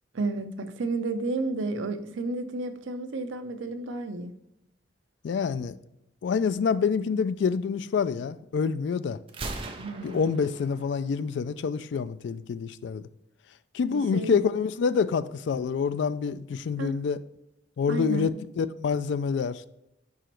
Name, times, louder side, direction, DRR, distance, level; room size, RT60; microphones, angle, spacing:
voice 1, 0.1-4.3 9.8-10.2 13.9-14.4 16.8-17.0 17.9-18.3, right 3 dB, 85° right, 0.6 m, -32 dB
voice 2, 5.2-5.8 6.2-9.2 10.0-13.0 13.7-17.2 17.8-18.3 18.6-19.7, left 6 dB, 70° left, 0.3 m, -27 dB
Gunshot gunfire, 9.3-11.2, right 3 dB, 30° right, 0.5 m, -39 dB
5.0 x 4.8 x 4.4 m
head